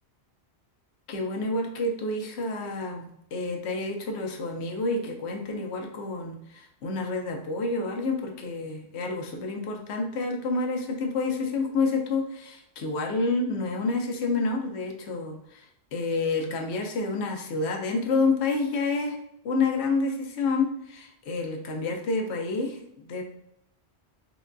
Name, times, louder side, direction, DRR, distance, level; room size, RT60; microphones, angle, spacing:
voice 1, 1.1-15.7 15.9-19.2 19.4-23.2, left 3 dB, 75° left, 3 dB, 0.9 m, -29 dB
3.8 x 2.2 x 2.5 m, 0.74 s
omnidirectional pair, 1.1 m